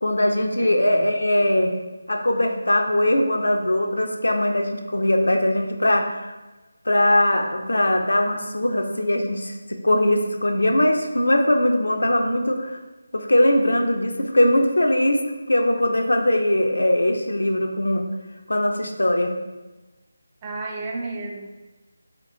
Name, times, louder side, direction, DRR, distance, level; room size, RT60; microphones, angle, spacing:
voice 1, 0.0-1.8 2.1-6.3 6.9-12.8 13.1-15.2 15.5-18.1 18.5-19.3, left 1 dB, 90° left, 4 dB, 0.5 m, -21 dB
voice 2, 0.6-1.1 20.4-21.5, right 2 dB, 20° right, -1 dB, 0.4 m, -32 dB
3.7 x 2.7 x 3.7 m, 1.1 s
figure-of-eight pair, 170°, 0 cm